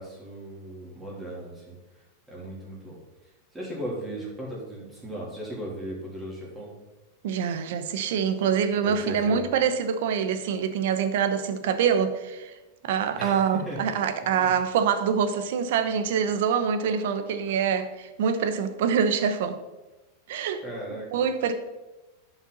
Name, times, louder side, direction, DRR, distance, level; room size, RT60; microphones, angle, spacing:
voice 1, 0.0-1.8 2.3-3.0 3.5-6.7 8.8-9.4 13.2-13.8 14.3-14.5 20.6-21.1, right 1 dB, 10° right, -5 dB, 3.3 m, -37 dB
voice 2, 7.2-12.6 12.8-19.6 20.3-20.6 21.1-21.5, right 7 dB, 70° right, 9 dB, 1.0 m, -25 dB
11.0 x 5.9 x 4.1 m, 1.1 s
supercardioid pair, 145°, 0 cm